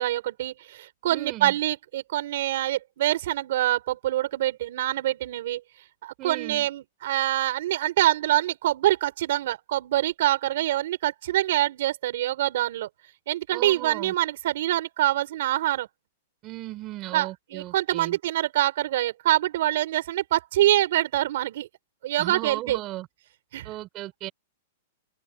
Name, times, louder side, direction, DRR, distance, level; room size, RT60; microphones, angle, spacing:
voice 1, 0.0-5.6 6.0-12.9 13.3-15.9 17.1-21.7 22.0-22.8 23.5-23.7, right 14 dB, 60° right, 5.7 m, -25 dB
voice 2, 1.1-1.6 6.2-6.7 13.5-14.1 16.4-18.2 22.2-23.1 23.6-24.3, right 17 dB, 30° right, 5.5 m, -36 dB
supercardioid pair, 160°, 0 cm